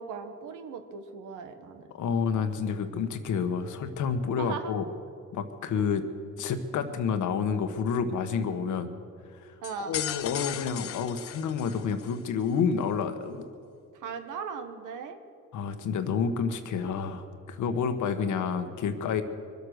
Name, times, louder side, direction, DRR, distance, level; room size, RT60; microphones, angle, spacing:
voice 1, 0.0-1.9 4.4-4.7 5.7-5.9 9.6-10.0 13.9-15.2, right 6 dB, 90° right, 8 dB, 1.3 m, -38 dB
voice 2, 2.0-4.8 5.3-6.0 6.4-8.9 9.3-13.4 15.5-19.2, left 6 dB, 75° left, 8 dB, 1.3 m, -29 dB
sound 1, 9.6-12.2, left 10 dB, 50° left, 0.6 m, -36 dB
23.5 x 8.2 x 6.5 m, 2.4 s
cardioid pair, 90°, 30 cm